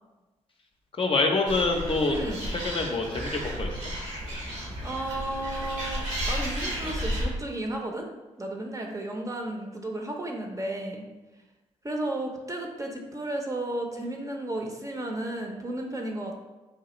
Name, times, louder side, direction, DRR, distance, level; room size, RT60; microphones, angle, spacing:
voice 1, 1.0-2.2 2.6-3.7, left 3 dB, 40° left, 2 dB, 0.5 m, -25 dB
Animal, 1.5-7.3, equal, 70° right, 1.0 m, -33 dB
voice 2, 2.1-2.5 4.4-4.5 4.8-8.1 8.4-11.0 11.8-16.4, right 1 dB, 25° right, 1 dB, 0.6 m, -33 dB
3.2 x 2.3 x 3.0 m, 1.1 s
supercardioid pair, 45°, 14 cm